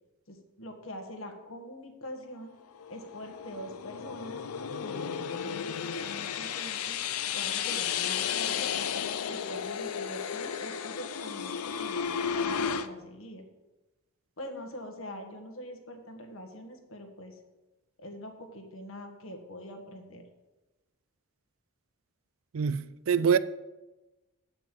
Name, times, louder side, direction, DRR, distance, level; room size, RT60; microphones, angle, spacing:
voice 1, 0.3-2.5 2.9-4.4 4.8-7.0 7.3-8.8 9.3-13.4 14.4-17.4 18.0-20.2, equal, 65° left, 1.4 m, -44 dB
sound 1, 2.8-12.9, left 7 dB, 90° left, 0.5 m, -33 dB
voice 2, 22.5-23.4, right 6 dB, 65° right, 0.4 m, -25 dB
9.0 x 5.3 x 7.6 m
head